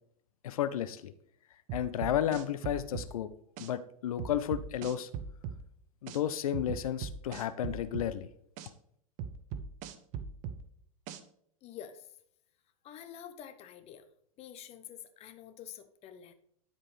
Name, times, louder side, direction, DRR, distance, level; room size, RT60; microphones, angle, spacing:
voice 1, 0.4-1.1 1.7-3.3 3.6-5.1 6.0-8.3, left 10 dB, 70° left, 13 dB, 0.6 m, -32 dB
sound 1, 1.7-3.1 3.6-3.7 4.2-5.6 6.1-6.2 6.5-8.1 8.6-8.7 9.2-10.6 11.1-11.2, right 7 dB, 40° right, 0.8 m, -39 dB
voice 2, 11.6-12.1 12.8-14.0 14.4-16.3, left 9 dB, 35° left, 10 dB, 0.9 m, -48 dB
12.5 x 5.0 x 3.3 m, 0.66 s
hypercardioid pair, 100°, 19 cm